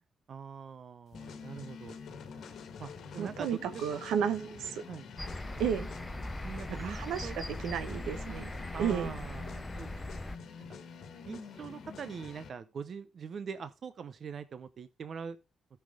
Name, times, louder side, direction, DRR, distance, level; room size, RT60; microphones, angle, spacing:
voice 1, 0.3-2.0 2.8-3.8 4.1-5.1 6.4-7.4 8.7-9.9 11.3-15.4, right 6 dB, 60° right, 0.7 m, -43 dB
sound 1, 1.1-12.5, left 5 dB, 70° left, 1.4 m, -47 dB
voice 2, 3.2-4.8 5.6-5.9 6.7-8.5 8.8-9.1, right 8 dB, 80° right, 0.9 m, -33 dB
sound 2, 5.2-10.4, left 1 dB, 15° left, 0.5 m, -40 dB
14.5 x 5.7 x 3.7 m
hypercardioid pair, 45°, 0 cm